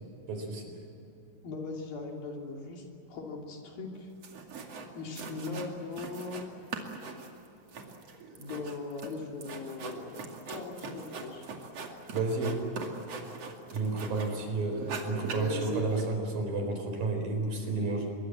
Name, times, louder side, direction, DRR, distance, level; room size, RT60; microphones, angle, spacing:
voice 1, 0.3-0.6 12.1-12.5 13.7-18.2, right 3 dB, 70° right, 4 dB, 5.9 m, -31 dB
voice 2, 1.4-4.1 4.9-6.4 8.4-11.4, left 3 dB, 75° left, 0 dB, 5.0 m, -40 dB
sound 1, 3.9-4.0 4.2-4.9 5.2-6.5 6.7-14.4 14.7-16.0, right 3 dB, 45° right, 3.2 m, -40 dB
25.5 x 23.0 x 7.7 m, 2.9 s
omnidirectional pair, 4.2 m